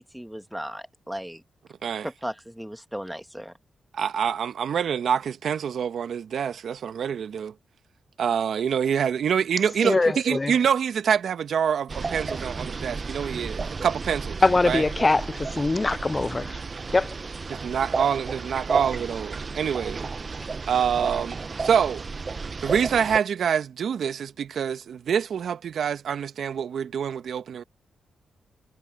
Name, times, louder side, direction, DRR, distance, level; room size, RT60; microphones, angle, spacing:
voice 1, 0.0-1.4 2.0-3.5, equal, 5° right, 1.8 m, -36 dB
voice 2, 3.9-7.5 8.2-14.4 14.6-14.8 17.5-20.0 20.7-22.1 22.6-27.6, right 8 dB, 70° right, 1.3 m, -26 dB
voice 3, 9.8-10.5 14.4-16.6 16.9-17.1, left 3 dB, 30° left, 0.5 m, -22 dB
sound 1, 11.9-23.2, right 4 dB, 45° right, 1.0 m, -33 dB
supercardioid pair, 50°, 0 cm